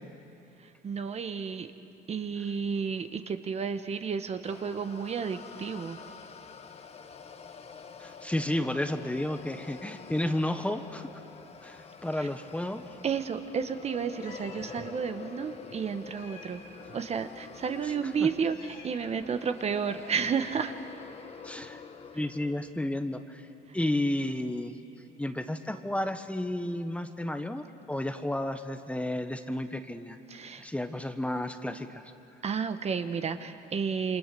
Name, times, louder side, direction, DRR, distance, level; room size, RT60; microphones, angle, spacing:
voice 1, 0.6-1.7 2.1-6.0 12.2-12.3 13.0-16.6 16.9-20.7 30.3-30.7 32.4-34.2, right 6 dB, 40° right, 9 dB, 1.1 m, -32 dB
sound 1, 4.4-22.7, left 5 dB, 40° left, 1.4 m, -47 dB
voice 2, 8.0-11.1 11.6-12.8 17.8-17.9 18.2-18.3 21.4-21.8 22.1-23.5 23.7-24.8 25.2-30.2 30.6-32.1, left 1 dB, 5° left, 8 dB, 1.1 m, -32 dB
Meow, 14.2-14.8 16.1-17.0 18.2-19.4, left 4 dB, 85° left, 5.3 m, -51 dB
28.0 x 26.0 x 6.9 m, 2.6 s
cardioid pair, 110°, 17 cm